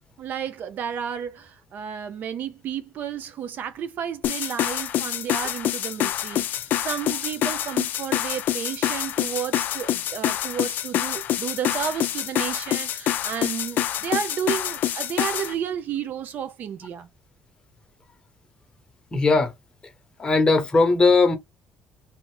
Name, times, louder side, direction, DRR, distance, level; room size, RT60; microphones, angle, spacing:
voice 1, 0.2-17.1, right 8 dB, 55° right, 0.5 m, -32 dB
sound 1, 4.2-15.5, left 12 dB, 60° left, 0.4 m, -26 dB
voice 2, 19.1-19.5 19.8-19.9 20.2-21.4, left 3 dB, 25° left, 0.9 m, -19 dB
2.8 x 2.5 x 3.3 m
cardioid pair, 110°, 4 cm